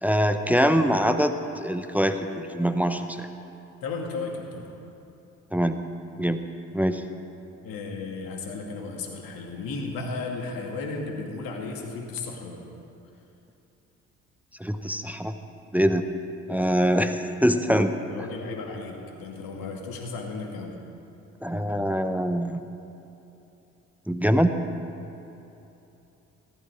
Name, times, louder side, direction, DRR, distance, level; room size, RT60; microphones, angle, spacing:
voice 1, 0.0-3.3 5.5-5.8 6.2-6.4 6.7-7.1 14.6-15.3 15.7-16.0 16.5-17.9 21.4-22.6 24.1-24.6, equal, 5° right, 8 dB, 0.9 m, -23 dB
voice 2, 3.8-4.7 7.6-12.6 18.1-20.8, left 3 dB, 65° left, 1 dB, 2.3 m, -34 dB
14.5 x 13.0 x 4.8 m, 2.9 s
hypercardioid pair, 45°, 38 cm